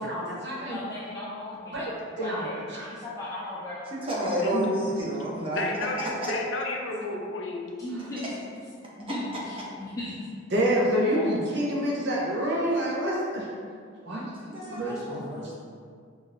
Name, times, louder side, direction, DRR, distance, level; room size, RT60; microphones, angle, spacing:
voice 1, 0.0-0.8 1.7-1.9 2.2-2.9 4.5-4.7 10.5-13.4 14.0-14.3 14.7-15.6, equal, 60° right, -4 dB, 0.8 m, -27 dB
voice 2, 0.7-3.9 7.8-8.4 9.0-10.2 11.1-11.7 12.1-13.4 14.9-15.0 15.3-15.6, left 1 dB, 15° left, -8 dB, 0.4 m, -38 dB
voice 3, 3.9-5.6 6.2-6.3 14.5-15.6, right 1 dB, 30° right, -5 dB, 0.8 m, -30 dB
voice 4, 5.5-7.8, left 2 dB, 70° left, 1 dB, 0.5 m, -32 dB
4.9 x 2.7 x 2.6 m, 2.1 s
head